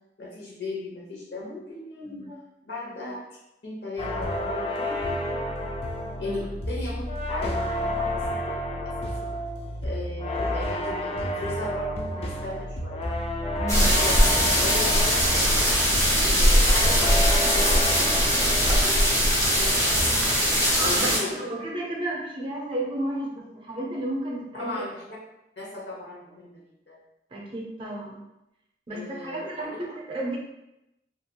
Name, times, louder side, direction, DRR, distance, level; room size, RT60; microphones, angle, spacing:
voice 1, 0.2-2.2 2.6-3.3 3.6-5.6 6.2-9.3 9.8-13.0 13.7-20.2 20.8-21.4 24.5-25.0 25.6-27.0 28.9-29.8, left 2 dB, 70° left, -4 dB, 0.9 m, -37 dB
sound 1, 4.0-19.7 20.0-20.4, left 1 dB, 35° left, 0.3 m, -30 dB
voice 2, 13.6-13.9 20.7-24.8 27.3-28.2 28.9-30.4, right 1 dB, 30° right, -2 dB, 0.5 m, -32 dB
sound 2, 13.7-21.2, equal, 20° left, 0.9 m, -21 dB
2.9 x 2.4 x 2.2 m, 0.89 s
head